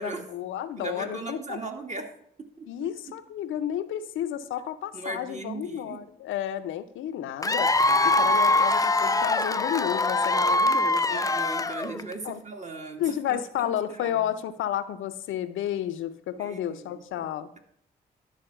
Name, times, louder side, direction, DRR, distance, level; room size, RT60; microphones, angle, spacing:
voice 1, 0.0-1.6 2.7-7.7 8.0-11.2 12.2-12.4 13.0-17.5, left 11 dB, 75° left, 11 dB, 0.5 m, -31 dB
voice 2, 0.8-2.1 2.4-2.9 4.9-6.0 11.1-14.2 16.4-17.3, right 3 dB, 35° right, 3 dB, 1.9 m, -38 dB
Cheering / Applause / Crowd, 7.4-12.1, left 2 dB, 15° left, 0.5 m, -23 dB
11.5 x 4.7 x 5.7 m, 0.69 s
hypercardioid pair, 40°, 20 cm